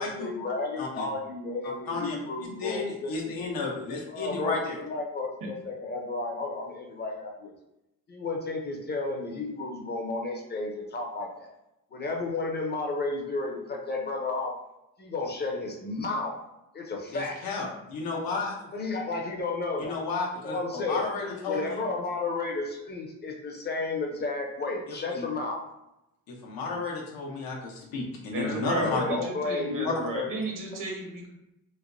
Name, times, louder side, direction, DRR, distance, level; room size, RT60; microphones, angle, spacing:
voice 1, 0.0-3.1 3.4-3.5 4.1-7.5 8.1-11.5 11.9-14.6 15.0-16.4 16.7-17.4 18.7-20.0 20.4-21.1 21.5-25.6 28.4-28.5 28.8-30.4, left 3 dB, 30° left, 2 dB, 0.6 m, -32 dB
voice 2, 1.6-2.2 2.6-4.8 17.1-18.5 19.8-21.7 25.1-25.3 26.3-29.0 29.8-29.9, left 4 dB, 90° left, -2 dB, 0.9 m, -32 dB
voice 3, 28.3-31.3, right 2 dB, 65° right, 0 dB, 1.1 m, -33 dB
3.2 x 3.0 x 2.6 m, 0.88 s
cardioid pair, 130°, 34 cm